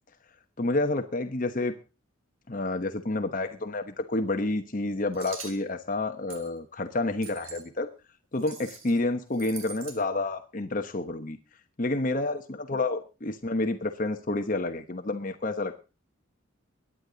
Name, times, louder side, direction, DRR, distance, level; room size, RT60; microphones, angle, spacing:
voice 1, 0.6-1.7 2.5-7.9 8.3-11.4 11.8-15.7, left 2 dB, 40° left, 7 dB, 1.0 m, -29 dB
sound 1, 5.1-5.6 6.3-6.5 7.2-7.6 8.4-9.0 9.3-10.0, right 6 dB, 85° right, 3.8 m, -43 dB
23.0 x 10.0 x 3.9 m, 0.33 s
head